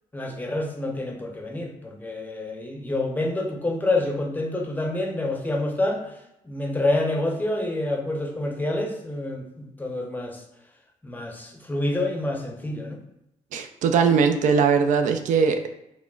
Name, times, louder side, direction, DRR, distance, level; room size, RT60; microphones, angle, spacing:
voice 1, 0.1-6.1 6.4-10.4 11.0-13.0, left 2 dB, 15° left, 2 dB, 0.6 m, -27 dB
voice 2, 13.5-15.7, right 6 dB, 70° right, 7 dB, 0.4 m, -20 dB
5.8 x 2.1 x 2.4 m, 0.85 s
cardioid pair, 100°, 13 cm